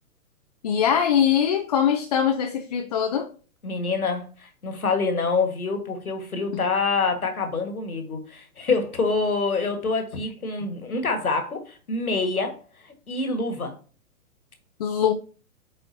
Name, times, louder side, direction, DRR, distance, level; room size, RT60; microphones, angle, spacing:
voice 1, 0.6-3.3 6.5-6.6 14.8-15.1, left 8 dB, 30° left, 0.4 m, -22 dB
voice 2, 3.6-13.7, left 4 dB, 80° left, 1.6 m, -26 dB
8.8 x 4.2 x 2.7 m
figure-of-eight pair, 115°, 43 cm